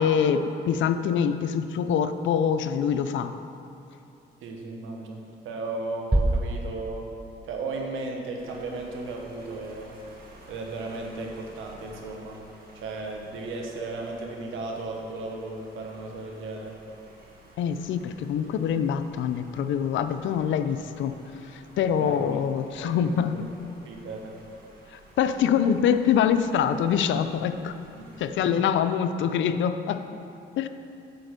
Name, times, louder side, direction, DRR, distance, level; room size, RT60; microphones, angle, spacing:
voice 1, 0.0-3.3 17.6-21.2 21.5-23.4 24.9-27.7 28.2-30.2 30.6-30.7, left 8 dB, 75° left, 10 dB, 0.5 m, -25 dB
voice 2, 4.4-7.1 7.4-10.0 10.5-12.4 12.7-16.8 21.9-22.4 22.8-23.4 23.8-24.4 28.0-28.1 28.4-28.6, right 3 dB, 85° right, 1 dB, 1.2 m, -35 dB
sound 1, 6.1-7.9, right 1 dB, 5° right, 0.4 m, -27 dB
sound 2, 8.4-28.3, right 1 dB, 45° right, 1.6 m, -53 dB
9.3 x 4.4 x 6.7 m, 2.7 s
cardioid pair, 90°, 20 cm